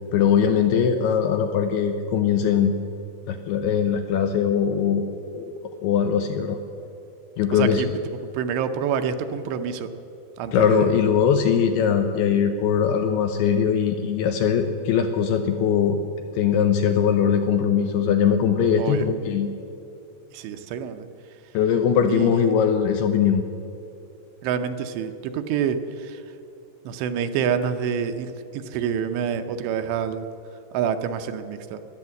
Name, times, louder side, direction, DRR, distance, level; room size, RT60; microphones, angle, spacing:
voice 1, 0.0-2.7 3.3-5.0 5.3-5.5 5.8-6.6 7.4-7.8 10.5-16.0 16.4-19.5 21.5-23.5, left 7 dB, 80° left, 6 dB, 2.4 m, -21 dB
voice 2, 7.5-7.9 8.3-9.9 10.4-10.9 18.8-19.0 20.3-21.1 22.1-22.5 24.4-26.2 26.9-30.3 30.7-31.8, right 7 dB, 80° right, 8 dB, 2.8 m, -27 dB
16.5 x 11.5 x 7.5 m, 2.8 s
omnidirectional pair, 5.2 m